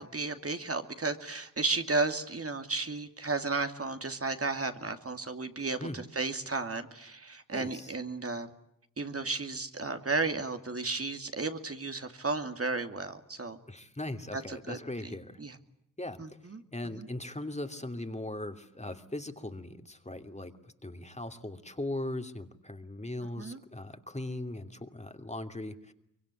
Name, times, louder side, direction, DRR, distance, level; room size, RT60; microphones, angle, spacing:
voice 1, 0.0-8.5 9.0-13.6 14.3-15.1 15.4-15.6 16.2-16.6 16.9-17.1 23.4-23.6, right 3 dB, 45° right, 7 dB, 2.6 m, -33 dB
voice 2, 7.5-8.0 13.7-15.4 16.0-16.2 16.7-25.9, left 1 dB, 20° left, 7 dB, 2.9 m, -39 dB
25.0 x 23.0 x 10.0 m, 0.76 s
cardioid pair, 45°, 32 cm